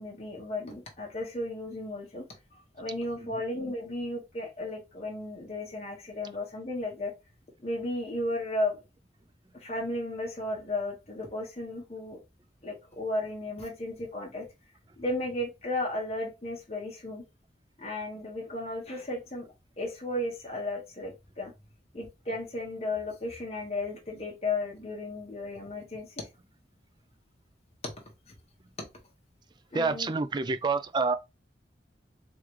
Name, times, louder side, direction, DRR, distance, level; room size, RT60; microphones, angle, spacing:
voice 1, 0.0-2.3 2.7-7.1 7.6-8.8 9.6-12.2 12.6-14.5 15.0-17.2 17.8-19.5 19.8-21.5 21.9-26.3 29.7-30.1, left 2 dB, 35° left, 1.1 m, -34 dB
voice 2, 29.7-31.2, right 4 dB, 25° right, 0.3 m, -28 dB
3.6 x 3.2 x 3.1 m
head